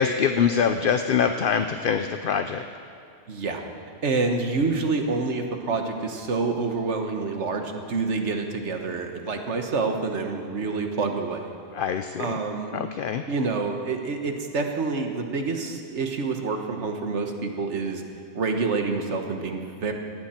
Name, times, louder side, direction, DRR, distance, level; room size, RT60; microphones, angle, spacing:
voice 1, 0.0-2.7 11.7-12.4 12.7-13.2, left 7 dB, 60° left, 8 dB, 0.7 m, -24 dB
voice 2, 3.3-3.6 4.0-11.4 12.2-12.8 13.3-18.0 18.3-19.9, right 4 dB, 85° right, 4 dB, 1.6 m, -27 dB
18.5 x 15.0 x 4.4 m, 2.3 s
omnidirectional pair, 1.2 m